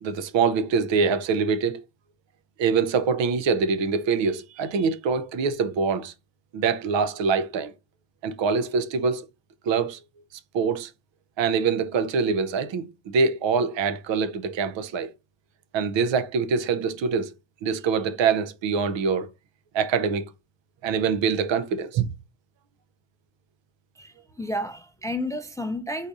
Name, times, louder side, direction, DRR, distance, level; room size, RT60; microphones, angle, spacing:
voice 1, 0.0-1.8 2.6-6.1 6.5-7.7 8.2-9.3 9.7-10.0 10.5-10.9 11.4-15.1 15.7-17.3 17.6-19.3 19.7-20.3 20.8-22.1, right 5 dB, 65° right, 0.7 m, -24 dB
voice 2, 24.0-26.1, left 1 dB, 10° left, 0.3 m, -31 dB
4.1 x 2.6 x 4.7 m
cardioid pair, 95°, 48 cm